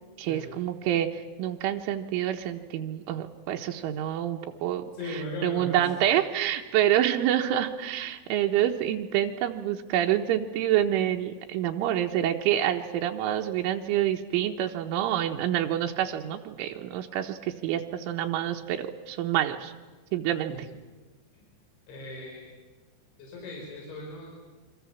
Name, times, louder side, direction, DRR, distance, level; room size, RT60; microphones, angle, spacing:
voice 1, 0.2-4.9 5.1-19.7 20.1-20.5, right 11 dB, 85° right, 3 dB, 3.5 m, -27 dB
voice 2, 4.9-5.9 20.5-20.6 21.9-22.5 23.2-24.3, left 1 dB, 65° left, -2 dB, 7.4 m, -38 dB
28.0 x 24.0 x 7.2 m, 1.3 s
omnidirectional pair, 5.5 m